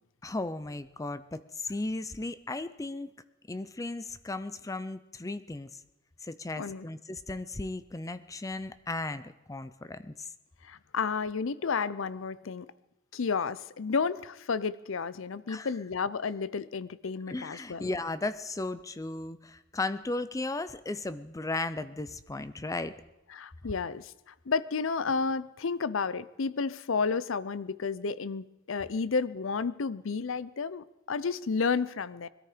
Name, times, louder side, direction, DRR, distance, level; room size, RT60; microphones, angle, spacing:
voice 1, 0.2-3.1 3.5-5.8 6.2-10.3 15.5-15.7 17.3-22.9, left 2 dB, 15° left, 13 dB, 0.5 m, -36 dB
voice 2, 10.6-12.7 13.1-17.9 23.3-32.3, left 5 dB, 70° left, 17 dB, 0.6 m, -31 dB
21.5 x 13.5 x 5.0 m, 0.97 s
head